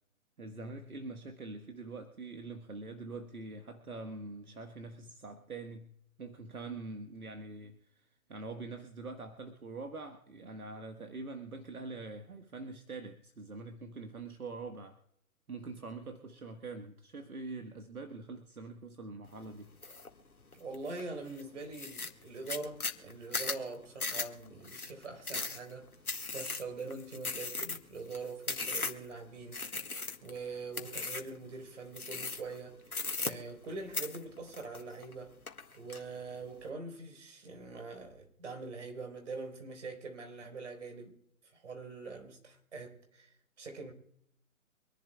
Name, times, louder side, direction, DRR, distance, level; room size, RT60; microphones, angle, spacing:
voice 1, 0.4-15.0 15.5-19.7, right 3 dB, 80° right, 1.6 m, -44 dB
sound 1, 19.8-20.1 20.5-21.0 21.4-21.5 21.7-29.1 29.5-30.4 30.7-31.4 31.9-32.6 32.9-33.7 33.9-35.1 35.5-36.0, left 3 dB, 85° left, 1.8 m, -37 dB
voice 2, 20.5-25.9 26.3-29.7 30.2-35.3 35.8-41.2 41.5-43.3 43.6-43.9, right 3 dB, 55° right, 4.0 m, -43 dB
26.0 x 11.0 x 2.3 m
figure-of-eight pair, 140°, 43 cm